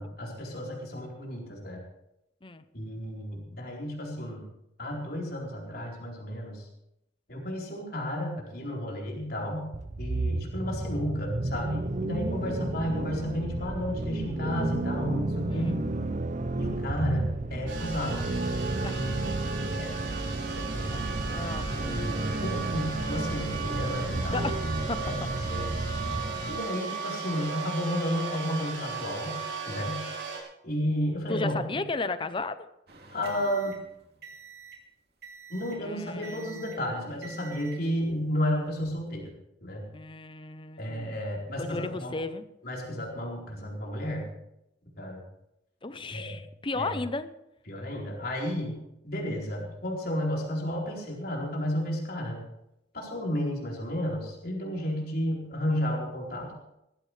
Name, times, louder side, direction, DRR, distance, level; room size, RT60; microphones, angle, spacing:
voice 1, 0.0-1.8 2.7-4.4 4.8-6.7 7.3-9.7 10.0-15.8 16.6-18.3 19.7-20.0 20.4-20.9 21.8-24.4 25.0-25.1 25.5-25.7 26.5-29.4 29.7-30.1 30.6-31.8 33.1-33.8 35.5-39.3 39.6-39.8 40.8-42.1 42.6-44.3 45.0-45.2 46.1-46.4 46.7-46.9 47.7-48.8 49.0-52.4 52.9-56.5, equal, 55° left, -2 dB, 4.3 m, -32 dB
sound 1, 9.7-26.6, right 2 dB, 40° right, 0.7 m, -32 dB
sound 2, 17.7-30.4, right 5 dB, 85° right, 4.6 m, -36 dB
voice 2, 18.8-19.2 20.9-21.0 21.3-22.0 24.3-24.6 24.9-25.1 31.3-32.7 35.7-36.8 39.9-41.2 41.6-42.4 45.8-47.3, left 3 dB, 25° left, 12 dB, 0.7 m, -35 dB
sound 3, 32.9-34.9 35.2-35.9 36.2-36.9 37.2-37.9 38.6-38.9, right 5 dB, 55° right, 2.7 m, -47 dB
19.5 x 15.0 x 3.3 m, 0.83 s
head